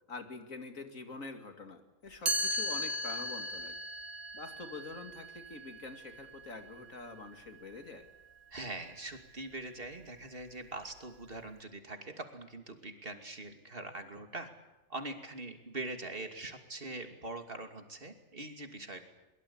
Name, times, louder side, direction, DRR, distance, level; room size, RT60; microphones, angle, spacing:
voice 1, 0.1-3.7 4.3-8.1, left 3 dB, 80° left, 6 dB, 2.9 m, -46 dB
Chime, 2.3-8.1, right 1 dB, 65° right, 2.4 m, -38 dB
voice 2, 8.5-14.5 14.9-19.0, right 2 dB, 45° right, 6 dB, 2.9 m, -43 dB
23.0 x 23.0 x 8.7 m, 1.0 s
omnidirectional pair, 1.4 m